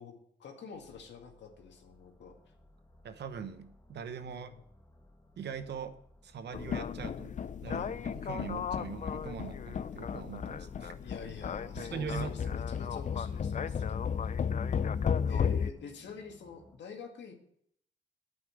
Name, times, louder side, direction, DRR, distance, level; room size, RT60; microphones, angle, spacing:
voice 1, 0.0-2.3 4.2-4.6 7.7-7.9 11.0-14.1 15.3-17.4, left 6 dB, 75° left, 3 dB, 2.0 m, -47 dB
sound 1, 0.7-16.8, left 1 dB, 20° left, 1.5 m, -58 dB
voice 2, 3.0-4.5 5.4-6.0 6.2-7.4 7.6-10.9 11.8-12.7, right 6 dB, 70° right, 10 dB, 1.0 m, -41 dB
sound 2, 6.5-15.7, left 7 dB, 45° left, 0.5 m, -34 dB
9.3 x 5.6 x 8.2 m, 0.69 s
cardioid pair, 70°, 18 cm